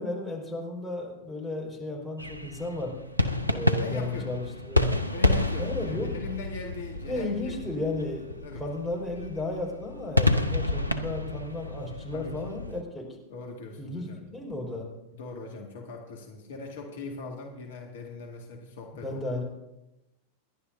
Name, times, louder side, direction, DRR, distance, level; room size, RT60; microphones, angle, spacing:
voice 1, 0.0-2.9 3.5-5.0 5.6-6.1 7.1-13.1 13.8-14.9 18.9-19.4, left 2 dB, ahead, 0 dB, 4.9 m, -34 dB
sound 1, 2.2-12.8, left 2 dB, 90° left, 0.7 m, -29 dB
voice 2, 3.8-4.3 5.1-7.5 8.4-8.6 12.1-12.5 13.3-14.2 15.1-19.4, left 3 dB, 60° left, 1 dB, 1.9 m, -40 dB
28.0 x 11.0 x 2.7 m, 0.94 s
figure-of-eight pair, 90°, 0 cm